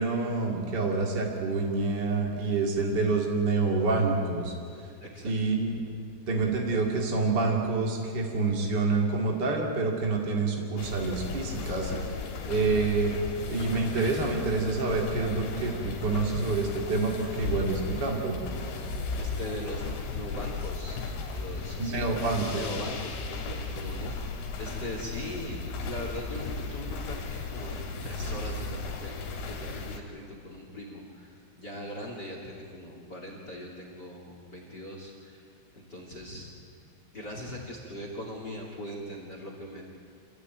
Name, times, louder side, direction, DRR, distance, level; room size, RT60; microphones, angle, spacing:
voice 1, 0.0-4.5 5.2-5.7 6.3-11.9 12.4-13.1 13.5-18.4 21.8-22.6, right 3 dB, 50° right, 0 dB, 1.2 m, -27 dB
voice 2, 5.0-5.3 19.2-21.0 21.3-22.1 22.5-29.1 29.5-35.4 35.7-36.5 37.1-39.8, equal, 30° left, 0 dB, 2.2 m, -40 dB
sound 1, 10.8-30.0, left 4 dB, 65° left, 4.6 m, -35 dB
26.5 x 16.0 x 9.2 m, 2.4 s
omnidirectional pair, 5.9 m